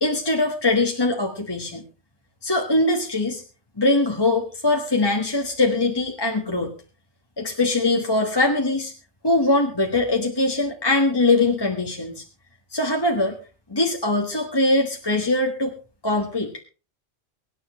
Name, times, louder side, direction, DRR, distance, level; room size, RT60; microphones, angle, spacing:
voice 1, 0.0-1.8 2.4-3.4 3.8-6.7 7.4-8.9 9.2-12.2 12.7-13.3 13.7-15.7 16.0-16.5, left 2 dB, 20° left, 1 dB, 1.5 m, -22 dB
24.0 x 10.0 x 3.2 m, 0.35 s
omnidirectional pair, 1.1 m